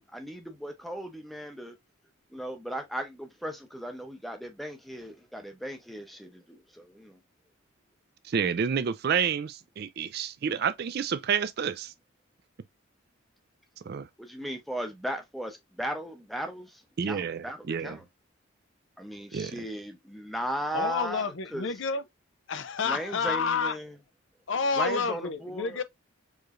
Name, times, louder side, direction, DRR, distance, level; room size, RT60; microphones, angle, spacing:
voice 1, 0.0-1.8 2.3-7.2 14.2-17.6 17.8-18.0 19.0-21.2 21.5-21.7 22.8-23.9 24.8-25.8, equal, ahead, 0.7 m, -36 dB
voice 2, 8.2-11.9 13.9-14.1 17.0-18.0 19.3-19.6, right 7 dB, 50° right, 0.3 m, -29 dB
voice 3, 20.7-22.0 22.5-23.8 24.5-25.8, left 5 dB, 60° left, 0.5 m, -29 dB
4.7 x 3.1 x 2.4 m
head